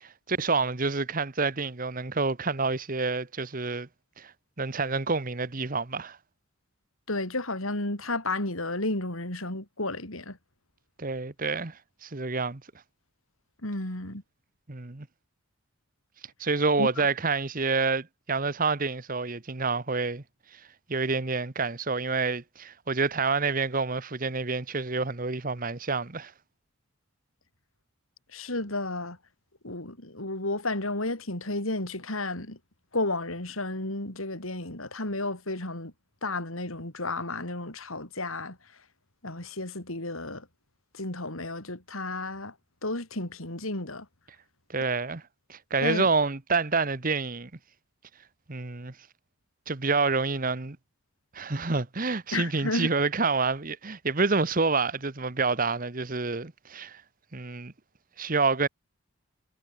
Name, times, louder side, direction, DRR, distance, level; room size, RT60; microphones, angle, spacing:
voice 1, 0.0-3.9 4.2-4.3 4.6-6.2 11.0-12.6 14.7-15.1 16.4-20.2 20.9-26.3 44.7-45.2 45.5-47.5 48.5-48.9 49.7-50.8 51.3-57.0 57.3-57.7 58.2-58.7, right 4 dB, 40° right, 1.2 m, -28 dB
voice 2, 7.1-10.4 13.6-14.2 16.8-17.1 28.3-29.2 29.6-32.6 32.9-35.9 36.2-38.6 39.2-40.5 40.9-42.5 42.8-44.1 45.8-46.1 52.3-52.9, left 2 dB, 80° left, 6.0 m, -32 dB
head